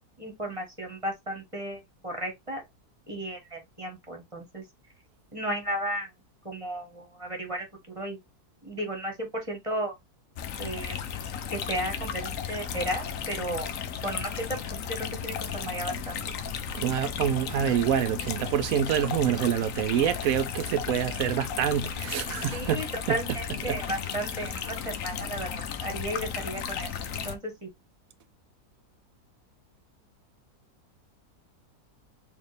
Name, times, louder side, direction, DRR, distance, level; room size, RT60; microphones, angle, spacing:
voice 1, 0.2-2.6 3.1-4.6 5.3-6.1 6.4-7.7 7.9-8.2 8.6-9.9 10.6-10.9 11.5-13.7 14.0-14.8 15.2-16.2 19.4-19.5 22.5-27.7, right 1 dB, 20° right, 1.2 m, -34 dB
sound 1, 10.4-27.4, left 7 dB, 65° left, 1.0 m, -34 dB
voice 2, 16.7-23.2 23.7-23.8, right 9 dB, 70° right, 0.9 m, -27 dB
4.5 x 2.8 x 3.2 m
omnidirectional pair, 1.7 m